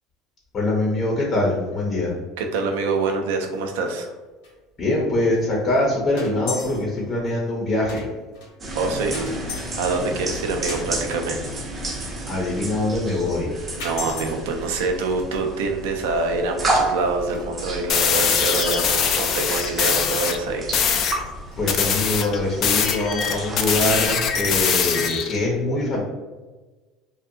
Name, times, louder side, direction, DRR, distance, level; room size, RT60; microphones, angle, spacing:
voice 1, 0.5-2.1 4.8-8.0 12.3-13.7 21.6-26.0, left 2 dB, 35° left, -3 dB, 0.7 m, -23 dB
voice 2, 2.4-4.1 8.7-9.2 9.5-11.4 13.8-20.8, right 3 dB, 85° right, 4 dB, 0.4 m, -25 dB
sound 1, 2.9-3.2 3.4-3.6 3.8-3.9 4.4-4.5 5.4-5.5 5.8-5.9 6.2-7.0 7.3-7.4 7.9-8.5 9.1-10.0 10.7-10.9 13.0-13.1 13.8-14.3 16.1-16.2 16.6-17.7 18.7-19.0 20.5-20.6 21.0-21.1 21.3-21.5, left 2 dB, 90° left, 1.0 m, -34 dB
sound 2, 8.6-24.7, right 2 dB, 25° right, 0.6 m, -32 dB
sound 3, 17.9-20.4 20.7-21.2 21.7-25.4, left 7 dB, 50° left, 0.3 m, -22 dB
2.6 x 2.2 x 2.5 m, 1.2 s
supercardioid pair, 115°, 0 cm